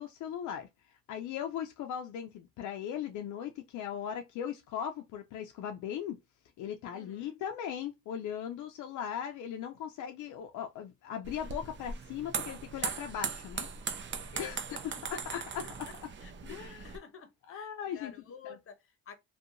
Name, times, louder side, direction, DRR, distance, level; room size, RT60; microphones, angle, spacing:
voice 1, 0.0-6.2 6.6-13.7 14.2-14.6 15.0-15.6 16.4-16.9 17.5-18.1 18.4-18.6, left 9 dB, 75° left, 0.5 m, -38 dB
voice 2, 6.9-7.4 14.3-15.9 16.2-19.1, left 7 dB, 45° left, 0.8 m, -50 dB
sound 1, 11.2-17.0, right 6 dB, 40° right, 0.5 m, -39 dB
2.7 x 2.2 x 2.5 m
cardioid pair, 90°, 30 cm